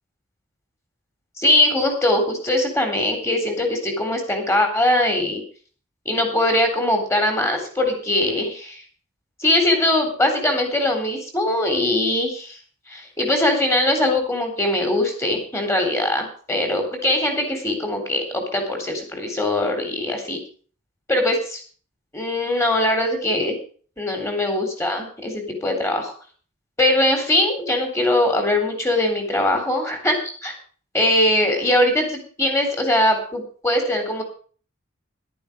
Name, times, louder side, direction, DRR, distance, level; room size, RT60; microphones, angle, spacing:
voice 1, 1.4-5.4 6.1-8.8 9.4-12.6 12.9-20.4 21.1-21.6 22.1-23.6 24.0-26.1 26.8-30.5 30.9-34.2, left 1 dB, 15° left, 4 dB, 3.8 m, -21 dB
14.0 x 12.0 x 5.2 m, 0.42 s
head